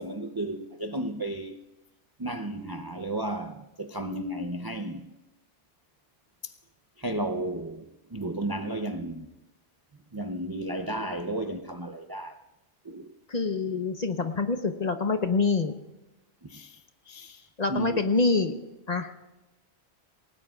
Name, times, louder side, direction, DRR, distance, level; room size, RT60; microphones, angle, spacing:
voice 1, 0.0-1.6 2.2-5.1 6.4-6.5 7.0-9.3 10.1-12.4 12.8-13.2 16.4-18.0, right 1 dB, 30° right, 0.4 m, -34 dB
voice 2, 13.3-15.7 17.6-18.6 18.9-19.1, left 3 dB, 40° left, 1.0 m, -26 dB
28.5 x 18.0 x 2.4 m
omnidirectional pair, 1.2 m